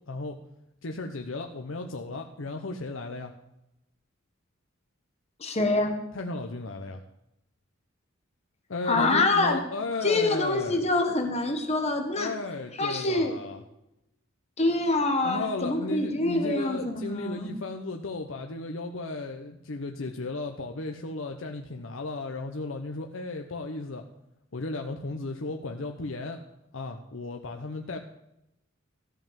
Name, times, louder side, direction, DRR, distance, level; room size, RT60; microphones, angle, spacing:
voice 1, 0.1-0.4 0.8-3.3 6.1-7.0 8.7-10.8 12.2-13.6 15.2-24.0 24.5-26.4 26.7-28.0, left 2 dB, 70° left, 4 dB, 0.8 m, -35 dB
voice 2, 5.4-6.0 8.9-9.6 10.0-12.3 12.8-13.4 14.6-17.5, left 2 dB, 30° left, 5 dB, 1.4 m, -25 dB
14.0 x 5.5 x 7.4 m, 0.87 s
head